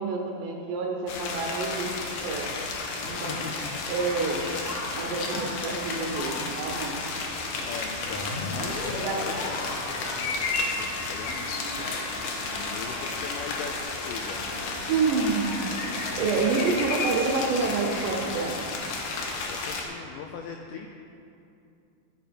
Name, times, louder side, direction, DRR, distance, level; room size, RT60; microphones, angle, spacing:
voice 1, 0.0-2.5 3.0-3.5 3.9-4.5 4.9-7.0 9.0-9.3 14.9-15.7 16.2-18.6, right 4 dB, 75° right, 0 dB, 2.0 m, -28 dB
sound 1, 1.1-19.8, left 3 dB, 75° left, 2.1 m, -32 dB
voice 2, 3.0-3.8 5.3-5.5 7.6-14.4 16.7-16.8 19.5-20.9, left 6 dB, 90° left, 3 dB, 1.8 m, -41 dB
Conversation, 3.8-18.8, equal, 20° right, 0.8 m, -42 dB
sound 2, 8.1-13.8, left 1 dB, 55° left, 2.1 m, -39 dB
12.5 x 4.3 x 5.0 m, 2.6 s
omnidirectional pair, 4.3 m